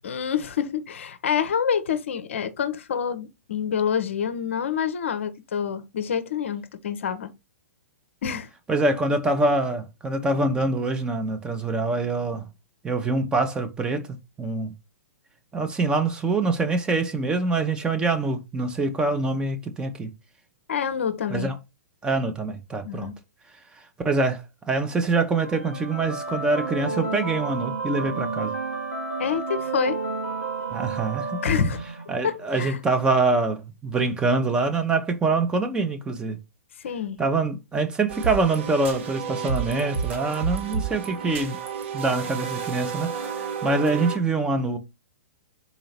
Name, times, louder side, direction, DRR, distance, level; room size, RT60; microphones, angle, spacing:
voice 1, 0.0-7.3 8.2-8.5 20.7-21.5 22.8-23.2 29.2-30.0 31.4-31.8 32.2-32.8 36.8-37.2, left 7 dB, 55° left, 0.6 m, -27 dB
voice 2, 8.7-12.5 12.8-14.7 15.5-20.1 21.3-21.5 22.0-23.1 24.0-28.5 30.7-31.4 32.1-36.4 37.2-41.6 41.9-43.3 43.6-44.8, right 3 dB, 10° right, 0.6 m, -25 dB
sound 1, 25.3-32.3, right 4 dB, 70° right, 1.7 m, -31 dB
sound 2, 38.1-44.2, right 6 dB, 50° right, 0.9 m, -31 dB
4.0 x 2.8 x 4.1 m
figure-of-eight pair, 110°, 8 cm